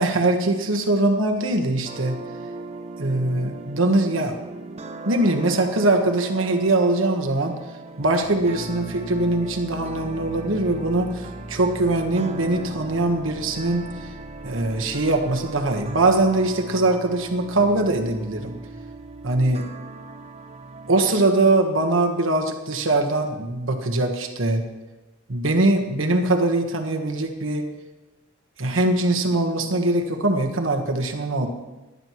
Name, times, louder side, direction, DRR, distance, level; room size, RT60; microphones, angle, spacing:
voice 1, 0.0-2.2 3.0-4.3 5.0-7.5 8.0-14.1 14.4-18.6 19.2-19.6 20.9-24.6 25.3-27.6 28.6-31.5, right 2 dB, 85° right, 4 dB, 1.3 m, -22 dB
sound 1, 1.8-21.2, right 2 dB, 30° right, 0.7 m, -38 dB
15.0 x 11.0 x 3.1 m, 1.1 s
head